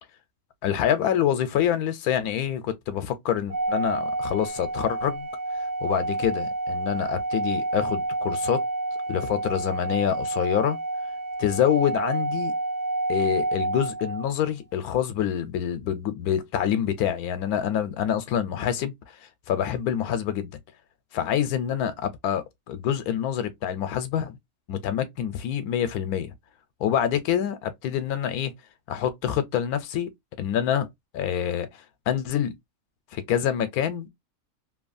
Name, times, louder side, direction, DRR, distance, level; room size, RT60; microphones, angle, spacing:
voice 1, 0.6-5.3 5.8-8.6 9.1-10.8 11.4-12.5 13.1-18.9 19.5-20.5 21.1-24.4 24.7-26.3 26.8-28.5 28.9-30.1 30.4-30.9 31.1-32.5 33.1-34.1, left 9 dB, 90° left, 1.1 m, -26 dB
Organ, 3.5-14.3, right 2 dB, 85° right, 1.4 m, -29 dB
3.0 x 2.3 x 2.4 m
omnidirectional pair, 1.5 m